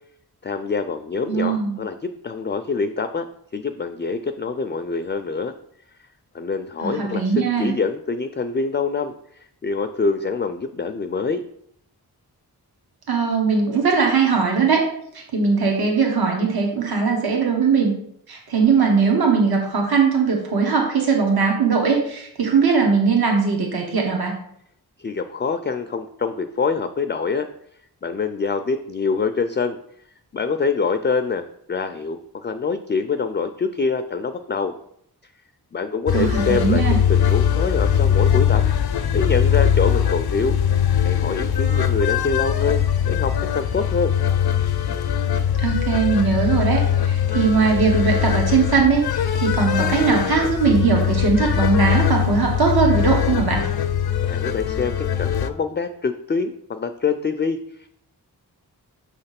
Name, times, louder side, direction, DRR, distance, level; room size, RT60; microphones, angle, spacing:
voice 1, 0.4-3.3 3.5-5.5 6.3-9.1 9.6-11.4 25.0-27.5 28.0-29.8 30.3-34.7 35.7-36.8 37.1-40.6 41.0-44.1 54.2-57.9, left 4 dB, 30° left, 8 dB, 0.4 m, -25 dB
voice 2, 1.3-1.8 6.8-7.7 13.1-14.8 15.1-17.9 18.3-24.3 36.1-37.0 45.6-53.6, right 5 dB, 70° right, 0 dB, 1.3 m, -20 dB
sound 1, 36.1-55.5, left 9 dB, 75° left, 0.6 m, -21 dB
6.3 x 3.3 x 5.7 m, 0.70 s
wide cardioid pair, 80°, 38 cm